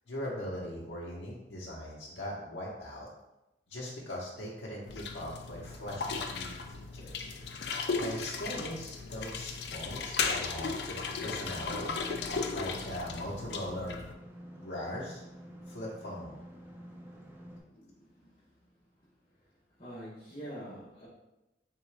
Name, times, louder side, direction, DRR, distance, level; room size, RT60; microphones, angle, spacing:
voice 1, 0.1-3.1 3.7-7.3 7.6-11.9 12.5-14.0 14.6-15.2 15.7-16.4, left 1 dB, 90° left, -5 dB, 0.8 m, -40 dB
sound 1, 4.9-14.1, left 4 dB, 70° left, 0.4 m, -36 dB
sound 2, 11.2-17.6, equal, 10° right, 0.5 m, -49 dB
voice 2, 17.7-18.2 19.8-21.1, equal, 35° left, -9 dB, 0.9 m, -45 dB
3.7 x 3.6 x 3.3 m, 0.96 s
head